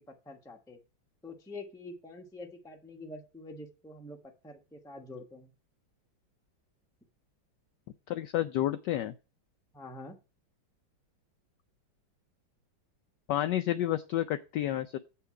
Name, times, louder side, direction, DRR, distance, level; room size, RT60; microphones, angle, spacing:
voice 1, 0.2-0.8 1.2-4.2 4.4-5.5 9.7-10.2, left 2 dB, 5° left, 2 dB, 0.8 m, -46 dB
voice 2, 8.1-9.1 13.3-15.0, left 13 dB, 75° left, 9 dB, 1.1 m, -30 dB
7.9 x 5.8 x 4.8 m, 0.31 s
omnidirectional pair, 2.2 m